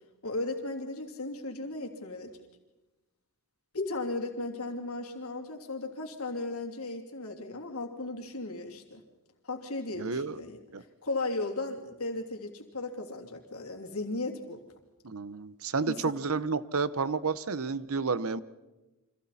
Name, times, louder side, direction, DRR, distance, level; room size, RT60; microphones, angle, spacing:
voice 1, 0.2-2.3 3.7-9.0 9.4-10.6 11.0-14.6 15.9-16.1, left 2 dB, 80° left, 3 dB, 3.1 m, -36 dB
voice 2, 9.9-10.4 10.7-10.8 15.0-18.4, right 4 dB, 75° right, 16 dB, 0.9 m, -31 dB
29.5 x 25.5 x 4.3 m, 1.1 s
head